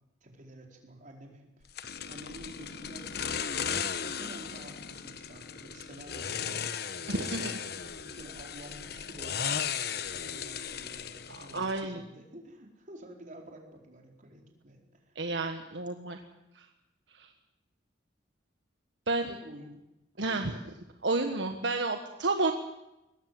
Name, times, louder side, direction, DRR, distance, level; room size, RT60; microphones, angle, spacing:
voice 1, 0.2-1.7 2.1-3.1 3.8-7.1 8.0-15.2 19.2-19.8 20.3-20.4, right 1 dB, 45° right, 2 dB, 4.6 m, -50 dB
sound 1, 1.8-11.9, left 7 dB, 60° left, 1.2 m, -36 dB
voice 2, 7.1-7.6 11.3-12.0 15.1-16.2 16.5-16.7 17.1-17.3 19.1-19.3 20.2-20.6 21.0-22.5, right 3 dB, 75° right, 5 dB, 1.6 m, -31 dB
22.5 x 20.0 x 7.8 m, 0.91 s
head